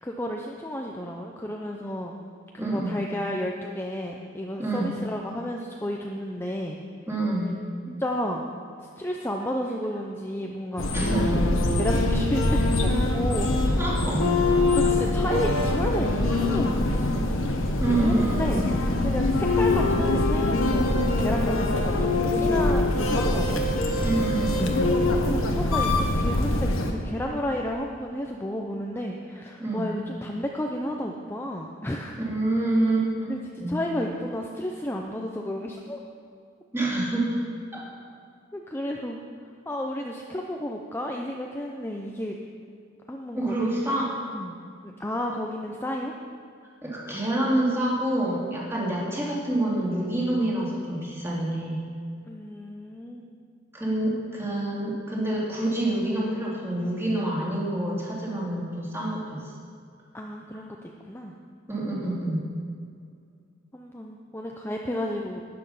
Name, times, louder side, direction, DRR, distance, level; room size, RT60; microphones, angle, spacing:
voice 1, 0.0-2.2 2.6-6.8 7.9-8.5 8.8-13.5 14.8-17.4 17.9-18.6 19.0-23.6 25.2-32.2 33.3-33.4 33.7-36.0 38.5-39.2 39.7-42.3 43.1-43.5 44.3-46.1 52.3-53.4 60.1-61.3 63.7-65.4, left 1 dB, 10° left, 0 dB, 0.6 m, -32 dB
voice 2, 2.6-3.0 4.6-4.9 7.1-7.5 10.9-11.3 13.8-14.4 17.8-18.7 24.0-24.9 29.6-29.9 32.2-33.3 33.6-33.8 36.7-37.4 37.7-37.8 43.3-44.1 46.8-51.8 53.7-59.5 61.7-62.5, right 1 dB, 10° right, -5 dB, 2.7 m, -27 dB
sound 1, 10.8-26.9, left 2 dB, 85° left, 1.3 m, -23 dB
12.0 x 9.6 x 5.6 m, 2.3 s
head